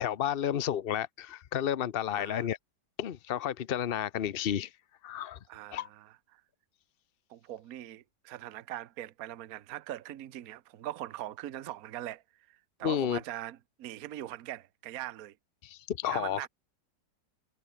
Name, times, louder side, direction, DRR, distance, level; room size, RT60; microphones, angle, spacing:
voice 1, 0.0-2.6 3.0-4.7 5.0-5.4 5.7-5.9 12.8-13.2 15.6-16.4, left 10 dB, 65° left, 0.5 m, -31 dB
voice 2, 2.1-2.5 5.5-6.4 7.3-12.2 12.5-15.3 16.1-16.5, right 13 dB, 60° right, 1.2 m, -41 dB
omnidirectional pair, 1.9 m